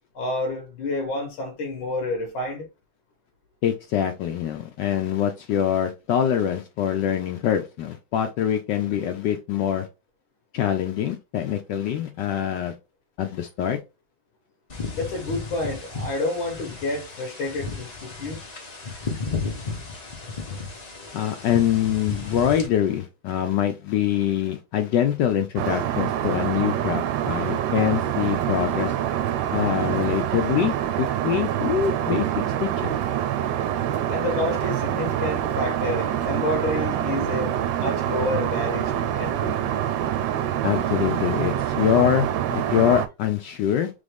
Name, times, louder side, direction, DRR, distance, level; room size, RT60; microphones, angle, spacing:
voice 1, 0.1-2.7 14.9-18.4 34.1-39.6, left 2 dB, 90° left, 1.9 m, -29 dB
voice 2, 3.6-9.9 10.5-12.7 13.2-13.8 21.1-28.9 29.5-32.3 32.6-32.9 40.6-43.9, left 10 dB, 70° left, 1.1 m, -24 dB
sound 1, 14.7-22.7, left 4 dB, 50° left, 0.4 m, -34 dB
Aircraft, 25.6-43.1, right 11 dB, 80° right, 1.3 m, -26 dB
3.8 x 3.4 x 3.5 m
omnidirectional pair, 2.2 m